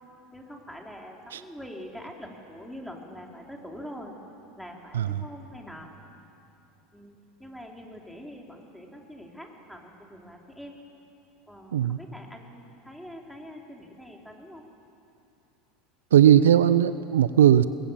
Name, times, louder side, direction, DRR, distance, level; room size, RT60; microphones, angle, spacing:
voice 1, 0.3-4.1 4.6-5.9 6.9-10.7 11.5-14.6, equal, ahead, 0 dB, 4.0 m, -44 dB
voice 2, 16.1-17.7, right 10 dB, 80° right, 14 dB, 0.6 m, -18 dB
24.5 x 21.5 x 7.4 m, 2.8 s
hypercardioid pair, 80°, 0 cm